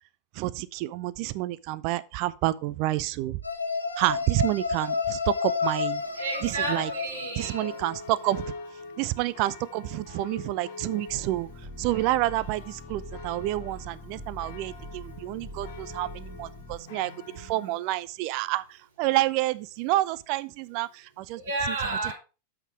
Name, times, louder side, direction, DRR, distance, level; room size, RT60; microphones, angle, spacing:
voice 1, 0.3-3.4 4.0-6.0 6.4-6.9 7.4-8.5 9.0-11.5 11.8-21.4 21.7-21.8, right 17 dB, 45° right, 0.5 m, -29 dB
sound 1, 3.4-8.4, left 5 dB, 80° left, 1.1 m, -31 dB
sound 2, 6.0-17.8, left 4 dB, 50° left, 1.8 m, -45 dB
voice 2, 6.1-7.8 10.2-10.3 14.8-16.2 16.7-17.2 21.3-22.1, right 3 dB, 60° right, 3.4 m, -34 dB
sound 3, 11.1-16.8, equal, 5° right, 1.7 m, -43 dB
8.2 x 6.0 x 4.8 m
figure-of-eight pair, 90°, 0 cm